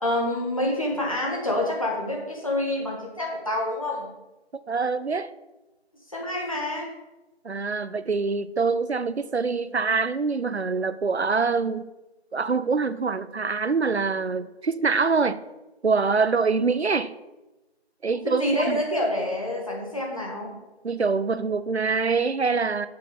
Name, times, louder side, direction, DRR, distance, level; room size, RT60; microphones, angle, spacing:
voice 1, 0.0-4.1 6.1-6.9 18.2-20.5, left 1 dB, 30° left, 2.2 m, -27 dB
voice 2, 4.7-5.3 7.4-11.9 12.3-15.4 15.8-17.1 18.0-18.8 20.8-22.9, right 4 dB, 75° right, 0.7 m, -25 dB
8.5 x 6.7 x 7.1 m
figure-of-eight pair, 175°, 33 cm